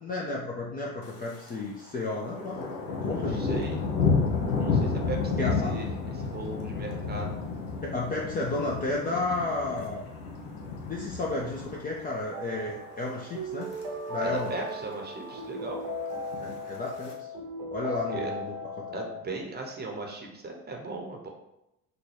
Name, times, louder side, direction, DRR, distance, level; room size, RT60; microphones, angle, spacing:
voice 1, 0.0-2.7 3.0-3.5 5.4-5.7 7.8-10.0 10.8-13.7 14.1-14.5 16.4-17.3 17.7-19.0, left 2 dB, 20° left, -3 dB, 0.4 m, -32 dB
Thunder, 1.0-1.6 1.9-12.2 12.6-12.9 13.4-13.8 14.1-14.2 14.4-14.5 14.8-15.4 16.2-17.1, left 4 dB, 70° left, 0.9 m, -31 dB
voice 2, 3.1-3.8 4.6-5.9 6.1-7.3 14.2-15.8 18.1-18.3 18.9-21.3, right 2 dB, 20° right, 1 dB, 0.8 m, -37 dB
sound 1, 12.3-19.2, left 1 dB, 50° right, 0.8 m, -37 dB
4.0 x 2.2 x 3.3 m, 0.87 s
figure-of-eight pair, 65°, 49 cm